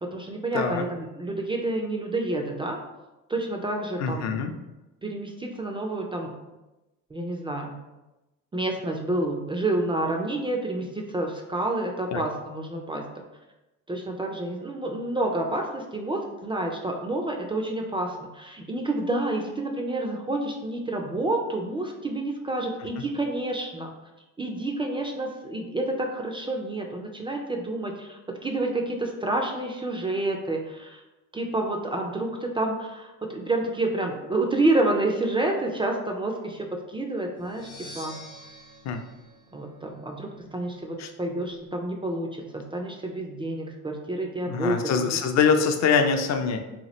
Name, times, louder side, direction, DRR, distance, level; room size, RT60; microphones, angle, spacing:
voice 1, 0.0-2.8 3.3-4.3 5.0-6.3 7.1-7.8 8.5-13.0 13.9-23.9 24.4-31.0 31.3-37.7 38.0-38.2 39.5-45.2, right 2 dB, 15° right, 2 dB, 0.3 m, -29 dB
voice 2, 0.5-0.8 4.0-4.5 12.1-12.2 23.0-23.1 38.8-39.0 41.0-41.1 44.5-46.6, left 6 dB, 45° left, 6 dB, 0.5 m, -24 dB
sound 1, 37.4-40.2, left 1 dB, 80° left, 0.8 m, -46 dB
2.9 x 2.3 x 2.9 m, 1.0 s
supercardioid pair, 75°, 39 cm